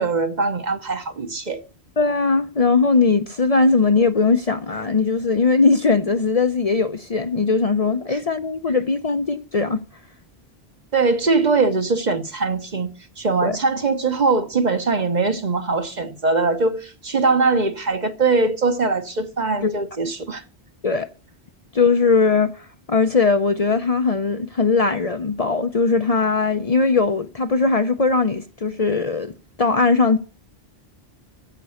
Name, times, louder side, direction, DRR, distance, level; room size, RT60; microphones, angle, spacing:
voice 1, 0.0-1.6 10.9-12.9 13.2-20.4, right 3 dB, 45° right, 1.2 m, -21 dB
voice 2, 2.0-9.8 13.4-13.6 19.6-19.8 20.8-21.1 21.7-29.3 29.6-30.2, left 4 dB, 40° left, 0.7 m, -19 dB
15.0 x 5.3 x 8.4 m
omnidirectional pair, 1.1 m